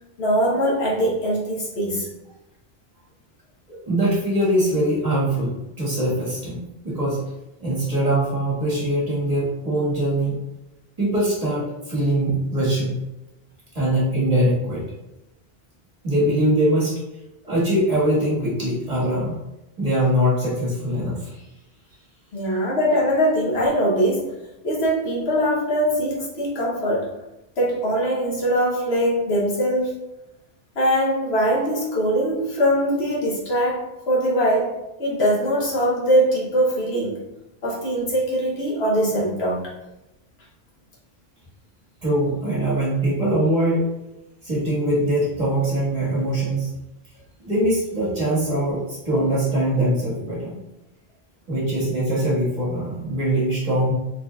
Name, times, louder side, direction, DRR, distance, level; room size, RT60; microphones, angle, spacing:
voice 1, 0.2-2.1 22.3-24.3 24.6-27.1 27.6-29.9 30.7-37.2 37.6-39.7, equal, 85° left, -5 dB, 1.4 m, -22 dB
voice 2, 3.7-7.2 7.6-10.4 11.0-13.0 13.7-14.9 16.0-16.9 17.4-19.3 19.8-21.4 42.0-43.8 44.4-46.7 47.5-50.6 51.5-53.9, right 1 dB, 35° right, -8 dB, 1.6 m, -22 dB
4.0 x 3.9 x 2.3 m, 0.96 s
omnidirectional pair, 1.0 m